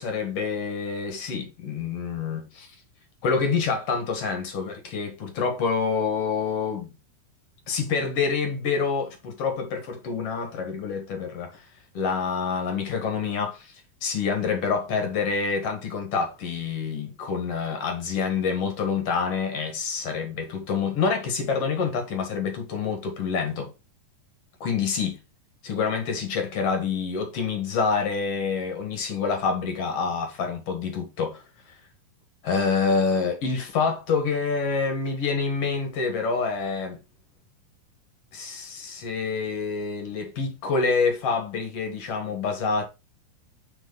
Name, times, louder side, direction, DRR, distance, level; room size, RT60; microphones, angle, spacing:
voice 1, 0.0-2.7 3.2-6.9 7.7-11.6 11.9-13.7 14.0-23.7 24.6-25.2 25.6-31.4 32.4-37.0 38.3-42.9, left 5 dB, 50° left, 2.3 m, -27 dB
6.1 x 5.0 x 3.9 m
omnidirectional pair, 4.0 m